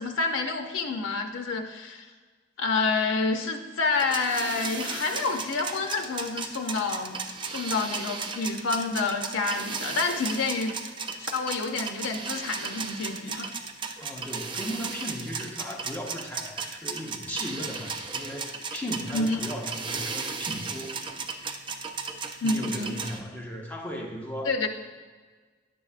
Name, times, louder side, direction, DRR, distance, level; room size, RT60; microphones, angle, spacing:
voice 1, 0.0-2.0 2.6-7.2 7.4-10.8 11.2-13.5 19.1-19.4 22.4-23.0 24.4-24.7, left 3 dB, 85° left, 5 dB, 0.5 m, -28 dB
sound 1, 3.9-23.2, right 5 dB, 25° right, 0.4 m, -35 dB
voice 2, 14.0-20.9 22.4-24.7, equal, 10° left, -2 dB, 0.8 m, -36 dB
9.9 x 6.9 x 2.4 m, 1.5 s
head